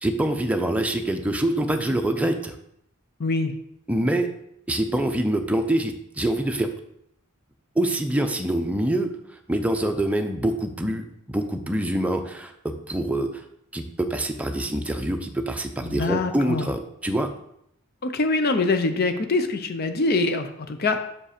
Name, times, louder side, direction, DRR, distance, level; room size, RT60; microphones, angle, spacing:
voice 1, 0.0-2.5 3.9-4.3 4.7-6.7 7.8-9.1 9.5-13.4 13.7-17.3, right 1 dB, 5° right, 5 dB, 0.6 m, -25 dB
voice 2, 3.2-3.5 15.8-16.7 18.0-21.1, left 3 dB, 50° left, 8 dB, 0.6 m, -24 dB
5.9 x 5.1 x 5.0 m, 0.74 s
head